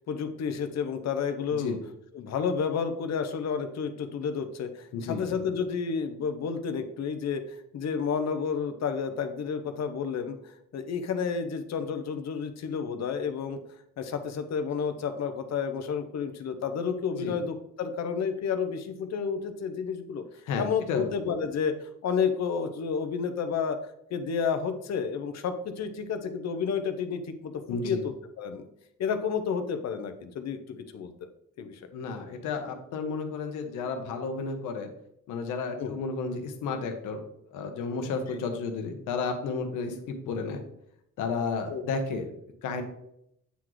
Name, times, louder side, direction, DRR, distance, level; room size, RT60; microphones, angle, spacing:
voice 1, 0.1-1.8 2.1-13.6 14.0-20.2 20.6-23.8 24.1-28.7 29.0-31.1 31.6-31.8 35.8-35.9 41.7-41.8, left 6 dB, 60° left, 9 dB, 0.8 m, -31 dB
voice 2, 4.9-5.2 17.2-17.4 20.5-21.1 27.7-28.0 31.9-34.9 35.3-37.2 37.5-40.6 41.2-42.3 42.6-42.8, left 4 dB, 90° left, 6 dB, 1.0 m, -32 dB
8.3 x 3.8 x 3.1 m, 0.77 s
cardioid pair, 90°, 30 cm